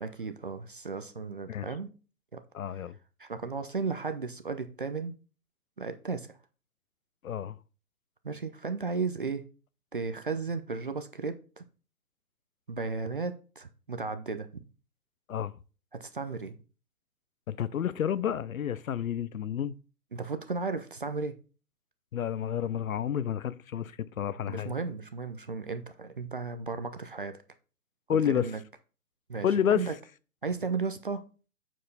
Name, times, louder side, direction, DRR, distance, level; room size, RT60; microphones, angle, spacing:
voice 1, 0.0-1.9 2.3-2.4 3.2-5.1 5.8-6.3 8.2-9.4 9.9-11.6 12.7-14.6 15.9-16.6 20.1-21.4 24.5-27.4 28.1-28.6 29.3-29.9 30.4-31.2, right 4 dB, 35° right, 0.4 m, -34 dB
voice 2, 2.5-2.9 7.2-7.6 15.3-15.5 17.5-19.7 22.1-24.7 28.1-28.5 29.4-29.9, left 9 dB, 60° left, 0.6 m, -30 dB
7.3 x 4.6 x 4.0 m
figure-of-eight pair, 135°, 49 cm